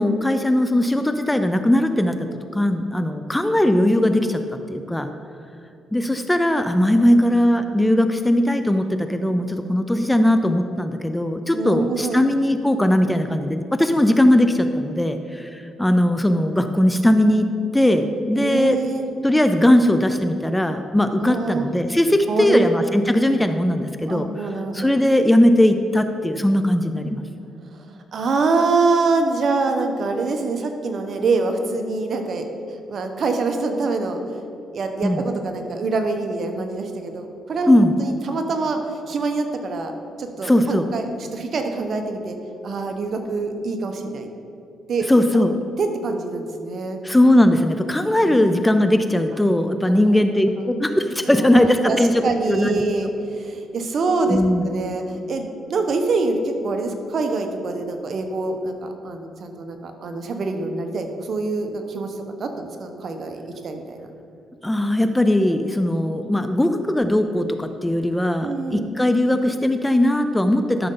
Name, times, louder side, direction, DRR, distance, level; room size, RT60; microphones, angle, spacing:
voice 1, 0.0-2.1 2.5-4.4 4.7-5.1 5.9-18.8 19.2-24.3 24.7-27.2 35.0-35.2 37.7-37.9 40.4-40.9 45.1-45.5 47.0-52.2 52.5-52.8 54.3-54.7 64.6-70.9, left 1 dB, 10° left, 8 dB, 0.5 m, -19 dB
voice 2, 6.8-7.3 11.5-12.2 18.3-19.0 21.2-21.7 22.3-22.7 24.1-24.9 27.7-34.2 34.7-39.9 40.2-42.4 42.6-44.3 44.9-45.1 45.3-45.5 45.8-47.0 48.2-48.7 49.8-50.6 51.2-64.0 68.4-68.9, right 3 dB, 55° right, 5 dB, 1.0 m, -25 dB
12.5 x 6.5 x 3.9 m, 2.6 s
cardioid pair, 90°, 0 cm